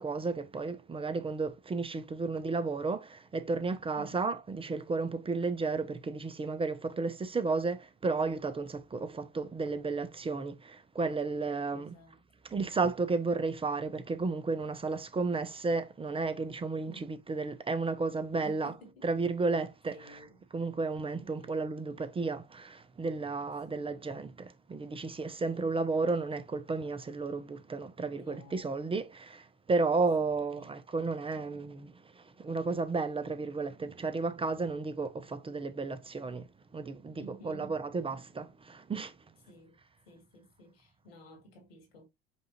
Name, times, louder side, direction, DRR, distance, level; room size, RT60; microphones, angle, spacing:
voice 1, 0.0-11.9 12.4-18.7 19.0-20.2 20.5-39.1, right 3 dB, 20° right, 0.6 m, -33 dB
voice 2, 11.7-12.2 16.9-17.1 18.4-19.1 19.9-20.4 21.2-21.5 23.7-24.0 25.5-25.8 28.2-28.8 30.2-30.7 37.1-37.8 39.5-39.8 40.1-42.1, right 1 dB, 90° left, 1.8 m, -53 dB
5.3 x 2.5 x 3.0 m
hypercardioid pair, 80°, 29 cm